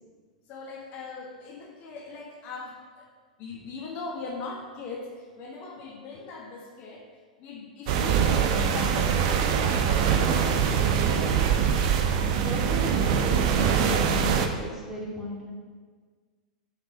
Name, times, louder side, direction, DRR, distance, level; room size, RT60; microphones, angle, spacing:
voice 1, 0.5-3.1 3.4-7.1 7.4-11.0 11.5-12.0 13.7-14.0, left 4 dB, 40° left, 0 dB, 1.2 m, -40 dB
sound 1, 7.9-14.5, right 7 dB, 50° right, 0.8 m, -23 dB
voice 2, 12.3-15.5, left 1 dB, 10° right, -4 dB, 2.5 m, -35 dB
5.6 x 5.6 x 6.6 m, 1.5 s
figure-of-eight pair, 95°, 4 cm